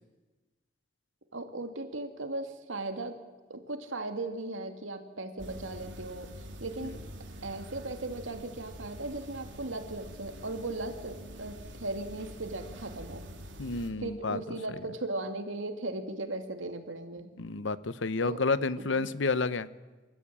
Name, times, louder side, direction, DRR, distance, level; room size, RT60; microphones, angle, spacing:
voice 1, 1.3-3.2 3.5-6.3 6.6-7.0 7.4-13.3 14.0-17.4 18.2-18.4 18.8-19.1, right 2 dB, 90° right, 6 dB, 2.4 m, -37 dB
sound 1, 5.4-13.9, equal, 75° right, 3.0 m, -46 dB
voice 2, 13.6-14.4 17.4-19.7, left 3 dB, 75° left, 16 dB, 0.8 m, -30 dB
27.0 x 14.0 x 8.8 m, 1.3 s
head